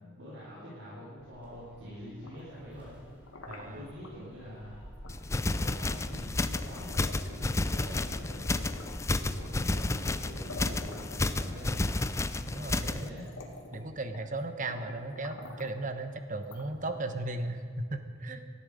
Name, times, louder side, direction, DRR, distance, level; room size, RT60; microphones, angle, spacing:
voice 1, 0.0-2.9 3.6-4.8 5.4-13.3, equal, 65° right, -9 dB, 4.9 m, -45 dB
Gull seagull, 1.2-10.5, equal, 5° right, 3.8 m, -50 dB
sound 1, 2.1-4.1 5.0-5.2 5.6-7.7 8.0-9.7 10.2-10.3 10.5-12.0 12.6-12.7 13.1-14.4 14.7-15.8 16.4-17.2, left 2 dB, 80° left, 1.8 m, -49 dB
voice 2, 3.5-3.8 12.5-13.1 13.7-18.4, right 2 dB, 40° right, 8 dB, 1.0 m, -36 dB
sound 2, 5.1-13.1, left 2 dB, 15° left, 0.4 m, -31 dB
19.0 x 13.0 x 5.0 m, 2.2 s
head